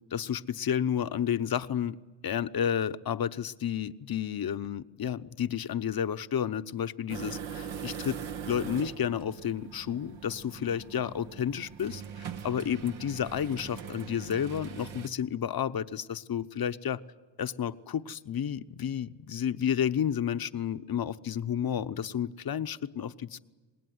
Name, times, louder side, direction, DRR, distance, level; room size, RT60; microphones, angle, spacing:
voice 1, 0.1-2.0 2.2-8.2 8.5-17.0 17.4-23.4, left 9 dB, 50° left, 12 dB, 0.9 m, -31 dB
sound 1, 7.1-15.1, right 8 dB, 85° right, 1.5 m, -41 dB
26.0 x 20.0 x 9.5 m, 1.3 s
cardioid pair, 75°, 46 cm